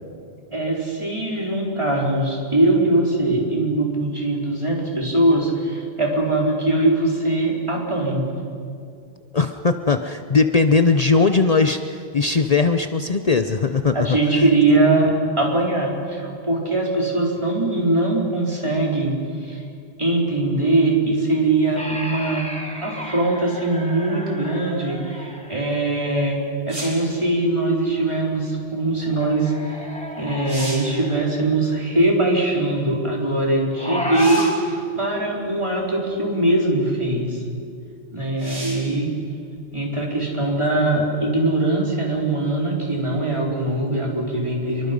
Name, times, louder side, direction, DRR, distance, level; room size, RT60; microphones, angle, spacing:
voice 1, 0.5-8.3 13.9-19.1 19.4-19.6 20.0-22.4 22.8-26.4 26.7-29.9 30.2-37.4 38.1-39.1 39.7-44.9, right 2 dB, 25° right, -3 dB, 4.5 m, -21 dB
voice 2, 9.3-14.1, left 4 dB, 40° left, 8 dB, 0.8 m, -19 dB
sound 1, 21.8-25.9 28.8-31.4 33.7-34.5, left 1 dB, 5° left, 2.7 m, -32 dB
sound 2, 26.7-27.1 29.8-29.9 30.3-31.0 34.1-34.7 35.7-35.8 38.4-39.0 42.5-42.6, right 1 dB, 50° right, 4.4 m, -34 dB
28.5 x 23.5 x 5.4 m, 2.3 s
omnidirectional pair, 1.1 m